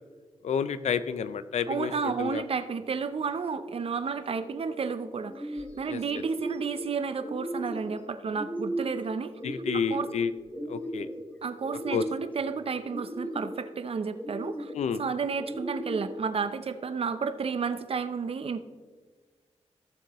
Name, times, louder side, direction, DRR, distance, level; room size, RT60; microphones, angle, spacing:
voice 1, 0.4-2.4 5.9-6.0 9.4-10.3 10.7-11.1 11.9-12.0 14.7-15.0, left 6 dB, 85° left, 13 dB, 0.5 m, -30 dB
voice 2, 1.7-9.3 9.7-10.1 11.4-14.7 15.0-18.6, right 5 dB, 60° right, 11 dB, 0.6 m, -32 dB
sound 1, 4.2-4.7 5.1-5.8 6.1-6.8 7.2-7.9 8.3-9.0 9.4-10.2 10.5-11.2 11.6-12.4 12.8-13.6 14.1-14.8 15.4-16.2, right 1 dB, 10° left, 1.4 m, -36 dB
15.5 x 7.1 x 3.0 m, 1.4 s
wide cardioid pair, 85°, 11 cm